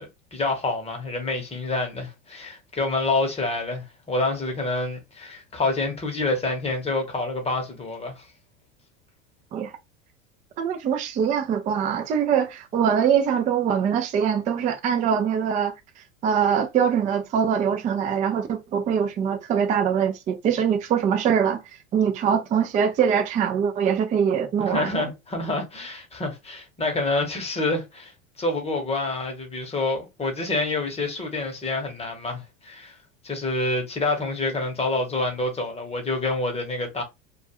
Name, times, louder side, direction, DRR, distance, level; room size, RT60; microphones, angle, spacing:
voice 1, 0.0-8.3 24.6-33.0 33.2-37.0, left 2 dB, 20° left, 0.9 m, -27 dB
voice 2, 10.6-15.7 16.2-21.6 21.9-25.0, right 7 dB, 25° right, 0.3 m, -23 dB
2.3 x 2.2 x 2.8 m
hypercardioid pair, 100°, 34 cm